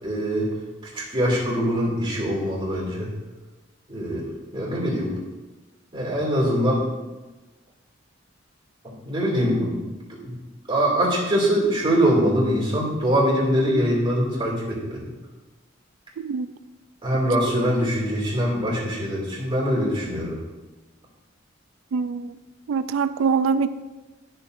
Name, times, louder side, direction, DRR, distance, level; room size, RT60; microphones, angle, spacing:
voice 1, 0.0-0.4 0.9-3.1 3.9-4.2 4.5-5.1 5.9-6.8 8.8-9.9 10.2-10.4 10.7-15.1 17.0-20.4, equal, 25° right, -5 dB, 2.4 m, -23 dB
voice 2, 21.9-22.3 22.7-23.7, right 5 dB, 80° right, 13 dB, 0.3 m, -23 dB
11.5 x 6.2 x 2.6 m, 1.2 s
head